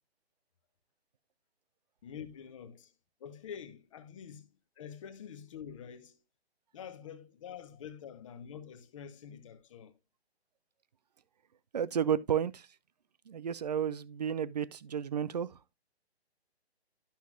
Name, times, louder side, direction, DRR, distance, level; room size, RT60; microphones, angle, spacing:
voice 1, 2.0-2.9 3.2-4.5 4.8-6.2 6.7-9.9, left 8 dB, 30° left, 0.9 m, -46 dB
voice 2, 11.7-12.7 13.3-15.5, right 8 dB, 40° right, 0.5 m, -32 dB
11.5 x 6.0 x 2.4 m
figure-of-eight pair, 140°, 33 cm